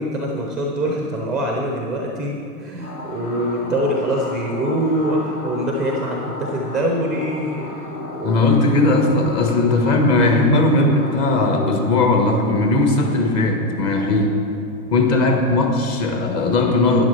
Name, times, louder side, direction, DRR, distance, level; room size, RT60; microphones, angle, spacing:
voice 1, 0.0-7.8 8.1-8.5, right 1 dB, ahead, 0 dB, 0.4 m, -24 dB
sound 1, 2.8-16.0, left 1 dB, 85° left, 2.0 m, -34 dB
voice 2, 8.2-14.4 14.9-17.0, left 2 dB, 35° left, 3 dB, 1.3 m, -18 dB
11.5 x 9.5 x 3.3 m, 2.4 s
hypercardioid pair, 120°, 46 cm